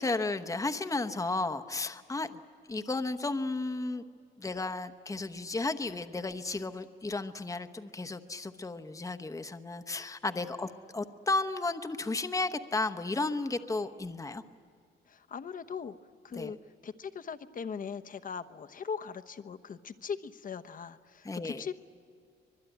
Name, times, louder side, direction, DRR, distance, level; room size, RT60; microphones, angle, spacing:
voice 1, 0.0-2.3 2.7-4.0 4.4-14.4 16.3-16.5 21.2-21.7, left 3 dB, 15° left, 9 dB, 1.0 m, -33 dB
voice 2, 15.1-16.0 16.2-16.6 16.8-21.7, left 6 dB, 45° left, 9 dB, 1.0 m, -40 dB
24.5 x 21.0 x 9.2 m, 2.1 s
cardioid pair, 90°, 20 cm